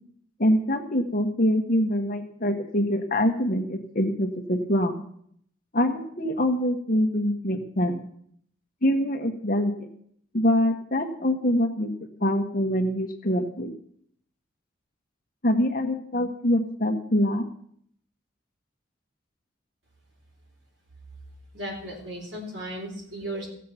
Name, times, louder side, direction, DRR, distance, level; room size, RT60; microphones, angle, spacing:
voice 1, 0.4-4.9 5.7-8.0 8.8-9.9 10.3-11.9 12.2-13.7 15.4-17.5, equal, 45° left, 5 dB, 1.3 m, -24 dB
voice 2, 21.5-23.5, right 1 dB, 65° right, 1 dB, 3.8 m, -35 dB
16.0 x 7.5 x 5.8 m, 0.66 s
head